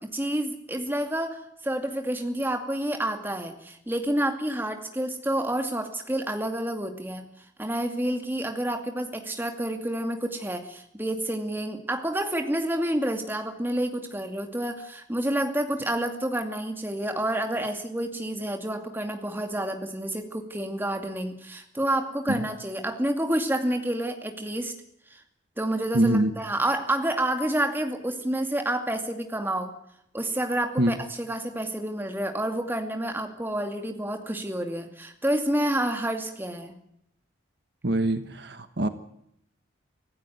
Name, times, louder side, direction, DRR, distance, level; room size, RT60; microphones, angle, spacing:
voice 1, 0.1-7.2 7.6-24.7 25.1-25.2 25.6-29.7 30.1-36.8, right 1 dB, 10° right, 5 dB, 2.4 m, -29 dB
voice 2, 25.9-26.3 30.8-30.9 37.8-38.9, right 1 dB, 55° right, 9 dB, 1.4 m, -24 dB
25.5 x 15.5 x 9.4 m, 0.75 s
head